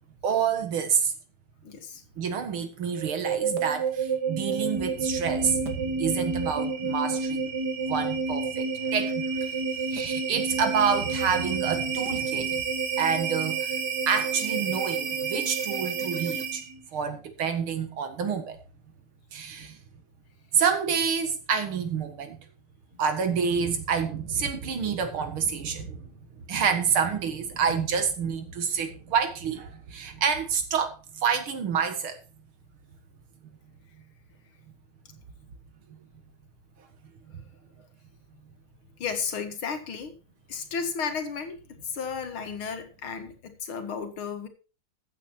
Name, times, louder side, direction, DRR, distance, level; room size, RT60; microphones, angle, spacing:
voice 1, 0.2-1.1 2.2-7.5 7.9-9.3 9.9-12.6 13.0-13.8 14.1-16.6 16.9-18.6 19.3-19.8 20.5-22.4 23.0-26.0 26.5-32.2 33.4-33.5 35.9-36.0, right 6 dB, 85° right, 2.6 m, -28 dB
voice 2, 1.6-2.0 8.7-9.1 9.5-9.9 26.1-26.2 27.5-27.8 39.0-40.1 40.5-44.5, left 6 dB, 80° left, 2.7 m, -34 dB
sound 1, 2.9-16.8, right 5 dB, 55° right, 2.1 m, -29 dB
14.5 x 8.2 x 4.5 m
omnidirectional pair, 2.3 m